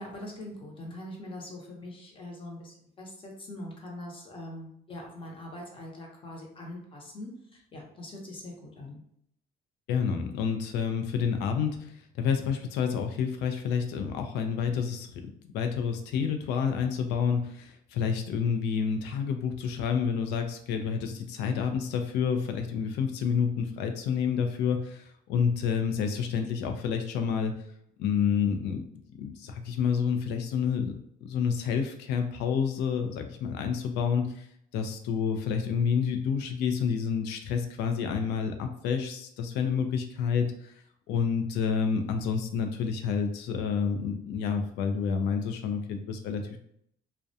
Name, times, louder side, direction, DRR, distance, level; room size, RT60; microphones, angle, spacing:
voice 1, 0.0-9.0, left 1 dB, 30° left, -1 dB, 0.7 m, -42 dB
voice 2, 9.9-11.9 12.2-27.5 28.0-28.8 29.2-34.4 34.7-40.7 41.1-46.6, left 6 dB, 90° left, 6 dB, 0.4 m, -29 dB
2.3 x 2.1 x 2.6 m, 0.70 s
cardioid pair, 110°, 17 cm